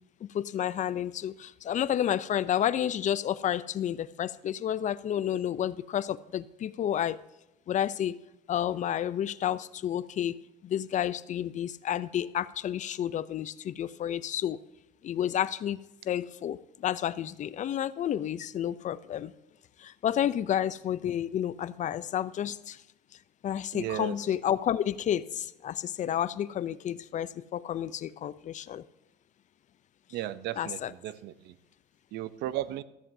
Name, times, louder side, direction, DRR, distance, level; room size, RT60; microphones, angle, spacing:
voice 1, 0.2-7.2 7.7-8.2 8.5-10.4 10.6-14.6 15.0-15.8 16.0-19.3 19.8-22.8 23.4-28.8 30.6-30.9, left 10 dB, 45° left, 0.5 m, -30 dB
voice 2, 23.7-24.2 30.1-31.5 32.1-32.8, right 13 dB, 80° right, 0.6 m, -35 dB
14.5 x 13.5 x 2.7 m
cardioid pair, 110°, 17 cm